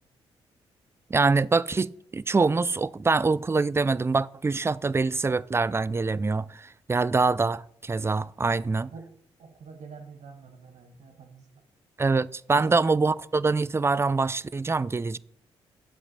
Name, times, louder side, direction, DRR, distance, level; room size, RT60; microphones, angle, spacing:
voice 1, 1.1-8.9 12.0-15.2, right 4 dB, 20° right, 0.4 m, -24 dB
voice 2, 9.4-11.5 12.5-12.7, right 5 dB, 60° right, 1.6 m, -45 dB
11.5 x 7.9 x 4.1 m
hypercardioid pair, 40°, 14 cm